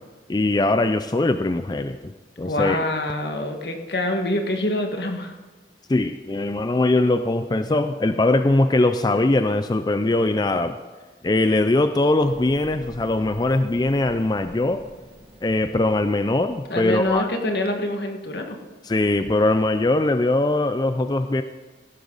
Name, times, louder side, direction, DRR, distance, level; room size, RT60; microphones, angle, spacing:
voice 1, 0.3-2.1 2.4-2.8 5.9-10.8 11.2-14.8 15.4-17.3 18.8-21.4, left 2 dB, 25° left, 9 dB, 0.4 m, -21 dB
voice 2, 2.4-5.3 16.7-18.6, left 1 dB, 70° left, 3 dB, 1.8 m, -25 dB
sound 1, 12.2-17.5, equal, 30° right, 2.1 m, -46 dB
16.5 x 11.5 x 4.0 m, 1.3 s
head